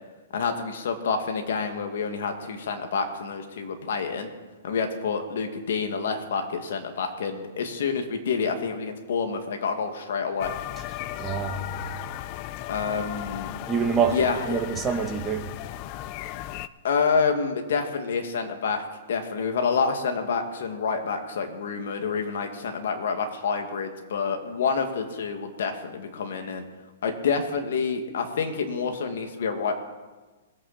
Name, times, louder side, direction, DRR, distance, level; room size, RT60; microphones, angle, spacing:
voice 1, 0.3-4.3 4.6-10.5 12.7-13.5 14.1-14.5 16.8-26.6 27.0-29.7, left 5 dB, 70° left, 5 dB, 2.1 m, -28 dB
sound 1, 10.4-16.7, left 13 dB, 40° left, 0.5 m, -36 dB
voice 2, 11.2-11.7 13.7-14.2 14.5-15.5, right 6 dB, 15° right, 3 dB, 1.5 m, -26 dB
21.0 x 8.7 x 4.3 m, 1.2 s
hypercardioid pair, 140°, 0 cm